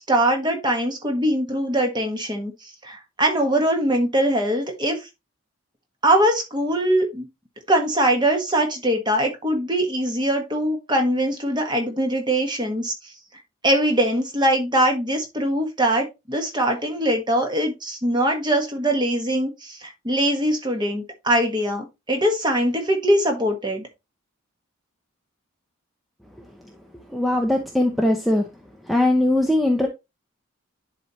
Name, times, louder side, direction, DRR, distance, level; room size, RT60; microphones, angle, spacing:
voice 1, 0.0-2.5 2.8-5.0 6.0-7.3 7.7-12.9 13.6-23.9, right 1 dB, 20° right, 1.5 m, -22 dB
voice 2, 27.1-28.5 28.9-29.9, left 1 dB, ahead, 0.7 m, -20 dB
10.5 x 4.2 x 3.1 m
head